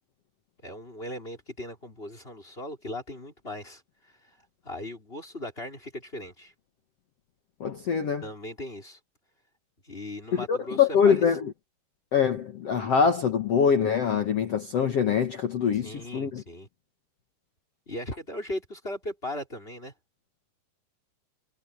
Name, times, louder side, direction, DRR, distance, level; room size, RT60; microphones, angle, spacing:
voice 1, 0.6-4.1 4.6-6.5 8.2-9.0 9.8-11.2 15.8-16.7 17.9-19.9, left 1 dB, 15° left, 4.2 m, -38 dB
voice 2, 7.6-8.2 10.5-11.5 12.1-16.4, left 7 dB, 65° left, 1.6 m, -24 dB
omnidirectional pair, 4.8 m